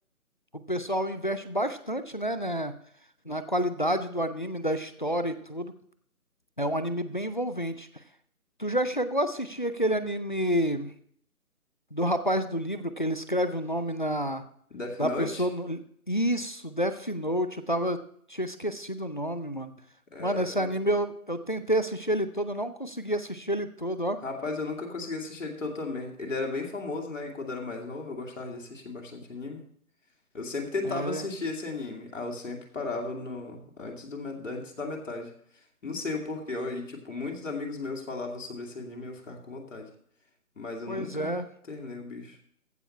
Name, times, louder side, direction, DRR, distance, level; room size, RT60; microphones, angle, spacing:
voice 1, 0.5-2.7 3.3-5.7 6.6-7.9 8.6-10.9 11.9-14.4 15.0-15.8 16.1-18.0 18.3-19.7 20.2-24.2 30.8-31.2 40.9-41.5, equal, 35° left, 12 dB, 0.5 m, -29 dB
voice 2, 14.7-15.5 20.1-20.8 24.2-29.6 30.3-35.3 35.8-39.9 40.6-41.3 41.7-42.4, left 3 dB, 55° left, 2 dB, 2.4 m, -35 dB
15.0 x 7.0 x 4.3 m, 0.65 s
figure-of-eight pair, 170°, 44 cm